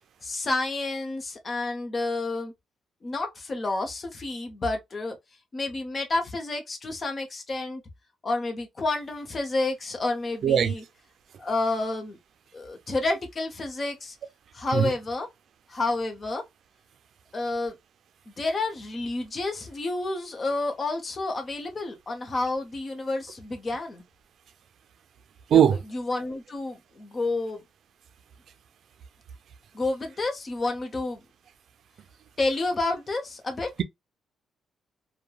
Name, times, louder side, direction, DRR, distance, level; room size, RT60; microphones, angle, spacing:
voice 1, 0.2-2.5 3.0-5.2 5.5-7.8 8.2-10.8 11.4-12.2 12.5-14.1 14.5-15.3 15.7-16.4 17.3-17.7 18.3-24.0 25.5-27.6 29.7-31.2 32.4-33.7, left 2 dB, 30° left, 0.8 m, -30 dB
voice 2, 10.4-10.7 14.7-14.9 25.5-25.7, right 9 dB, 65° right, 0.4 m, -19 dB
3.1 x 2.2 x 2.2 m
cardioid pair, 115°, 0 cm